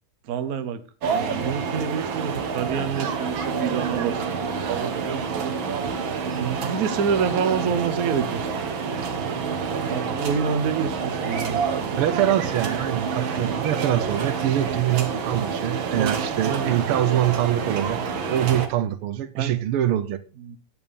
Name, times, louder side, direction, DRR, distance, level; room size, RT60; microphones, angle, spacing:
voice 1, 0.3-0.8 1.1-5.6 6.4-8.7 8.9-9.1 9.9-12.2 16.0-16.2 16.4-16.8 19.3-19.5 20.4-20.6, right 6 dB, 50° right, 1.3 m, -28 dB
sound 1, 1.0-18.7, right 5 dB, 70° right, 2.1 m, -28 dB
voice 2, 12.0-18.0 18.3-20.2, right 12 dB, 85° right, 1.8 m, -24 dB
9.1 x 8.9 x 5.3 m
omnidirectional pair, 2.3 m